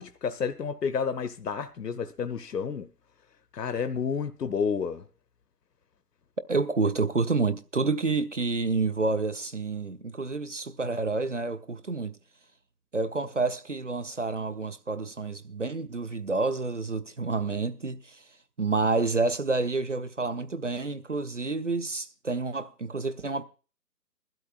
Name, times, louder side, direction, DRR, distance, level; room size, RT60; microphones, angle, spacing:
voice 1, 0.0-2.9 3.5-5.1, left 6 dB, 70° left, 0.8 m, -30 dB
voice 2, 6.5-12.2 12.9-18.2 18.6-23.4, right 3 dB, 50° right, 0.6 m, -29 dB
20.5 x 12.0 x 2.4 m
figure-of-eight pair, 155°, 50 cm